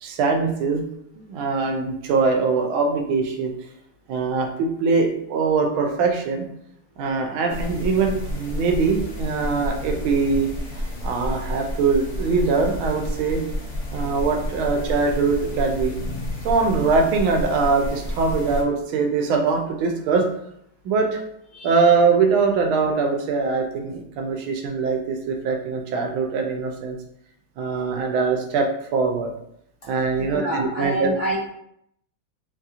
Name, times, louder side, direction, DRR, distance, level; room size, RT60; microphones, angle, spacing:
voice 1, 0.0-0.8 1.2-3.5 4.1-6.5 7.0-13.4 13.9-15.9 16.4-20.2 20.8-21.2 21.6-27.0 27.6-29.3 29.9-31.1, right 4 dB, 90° right, 3 dB, 1.4 m, -22 dB
sound 1, 7.5-18.6, left 1 dB, 60° left, 0.9 m, -30 dB
voice 2, 30.2-31.5, right 1 dB, 45° left, -7 dB, 1.3 m, -28 dB
4.1 x 2.7 x 2.4 m, 0.73 s
omnidirectional pair, 2.2 m